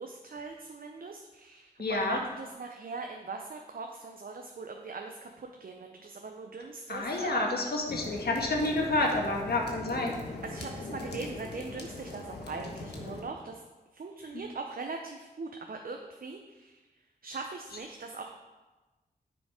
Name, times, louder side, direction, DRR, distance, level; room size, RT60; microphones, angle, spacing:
voice 1, 0.0-7.5 10.4-13.6 13.9-16.8 17.2-18.3, right 4 dB, 60° right, 3 dB, 0.7 m, -41 dB
voice 2, 1.8-2.2 6.9-10.1, left 2 dB, 70° left, 1 dB, 1.6 m, -29 dB
sound 1, 7.9-13.2, left 2 dB, 85° left, 1.2 m, -41 dB
9.6 x 4.9 x 5.0 m, 1.2 s
cardioid pair, 45°, 17 cm